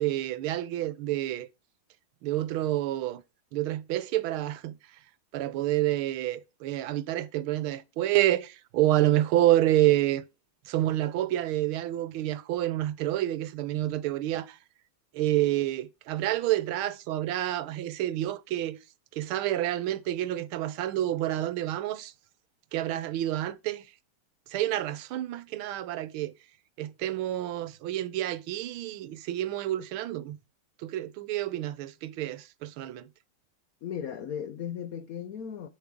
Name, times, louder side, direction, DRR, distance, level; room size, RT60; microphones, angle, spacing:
voice 1, 0.0-1.5 2.2-3.2 3.5-4.8 5.3-10.2 10.7-14.6 15.1-18.8 19.1-22.1 22.7-23.9 24.5-26.3 26.8-30.4 30.8-33.1, right 14 dB, 80° right, 1.5 m, -28 dB
voice 2, 33.8-35.7, left 8 dB, 75° left, 0.8 m, -36 dB
7.6 x 7.2 x 3.7 m
omnidirectional pair, 2.3 m